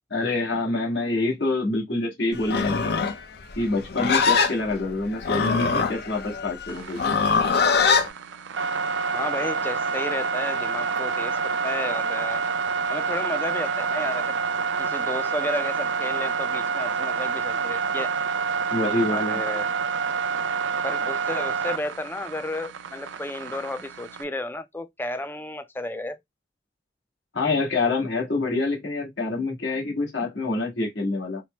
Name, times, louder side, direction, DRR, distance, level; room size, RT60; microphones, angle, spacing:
voice 1, 0.1-3.1 3.5-7.2 18.7-19.4 27.3-31.4, left 2 dB, 75° left, 1.5 m, -26 dB
Livestock farm animals working animals, 2.4-8.1, left 5 dB, 60° left, 0.6 m, -23 dB
sound 1, 6.7-24.2, right 5 dB, 75° right, 0.5 m, -28 dB
voice 2, 9.1-12.4 12.9-14.3 14.8-18.1 19.1-19.7 20.8-26.2, left 2 dB, 10° left, 0.4 m, -32 dB
4.3 x 2.1 x 3.1 m
head